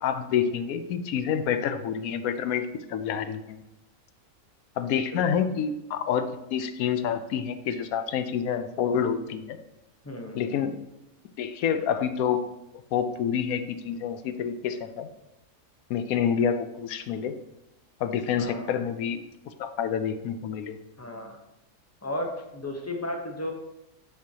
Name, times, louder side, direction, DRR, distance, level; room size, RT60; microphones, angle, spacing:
voice 1, 0.0-2.6 2.9-3.6 4.8-9.6 10.3-10.7 11.4-12.4 12.9-15.1 15.9-17.3 18.0-19.2 19.6-20.8, left 8 dB, 80° left, 10 dB, 1.0 m, -28 dB
voice 2, 10.0-10.5 18.4-18.7 21.0-21.4 22.0-23.5, left 1 dB, 15° left, 2 dB, 0.7 m, -34 dB
6.8 x 6.4 x 2.8 m, 0.94 s
omnidirectional pair, 1.5 m